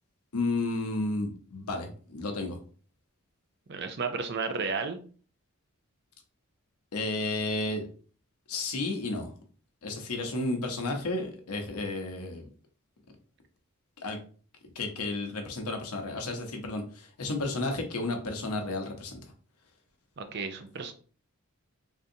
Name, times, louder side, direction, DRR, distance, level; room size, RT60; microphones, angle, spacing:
voice 1, 0.3-2.6 6.9-7.9 8.5-9.3 9.8-12.5 14.0-14.2 14.8-19.2, left 2 dB, 85° left, 4 dB, 0.7 m, -32 dB
voice 2, 3.7-5.0 20.2-20.9, right 4 dB, 50° right, 7 dB, 0.4 m, -33 dB
3.6 x 2.5 x 2.7 m, 0.41 s
head